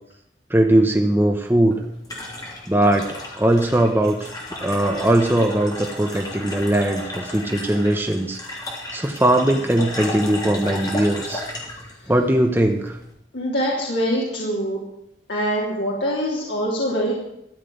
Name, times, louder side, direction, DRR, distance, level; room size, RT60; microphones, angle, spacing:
voice 1, 0.5-1.8 2.7-4.3 4.6-8.4 8.9-11.4 12.1-13.0, right 1 dB, 10° right, 3 dB, 0.9 m, -20 dB
sound 1, 1.4-13.1, left 1 dB, 20° left, 3.2 m, -34 dB
voice 2, 13.3-14.8 15.3-17.1, equal, 80° left, -4 dB, 3.1 m, -24 dB
13.5 x 7.6 x 9.2 m, 0.79 s
head